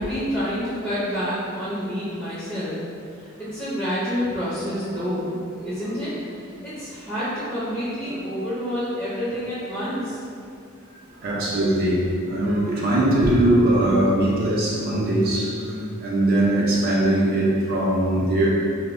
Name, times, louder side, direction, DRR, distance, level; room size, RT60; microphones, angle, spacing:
voice 1, 0.0-2.8 3.1-5.3 5.6-6.1 6.4-10.2, equal, 10° left, -12 dB, 0.5 m, -28 dB
voice 2, 5.6-6.0 8.1-8.2 11.1-18.5, right 1 dB, 45° right, -5 dB, 0.4 m, -21 dB
2.1 x 2.0 x 3.4 m, 2.4 s
head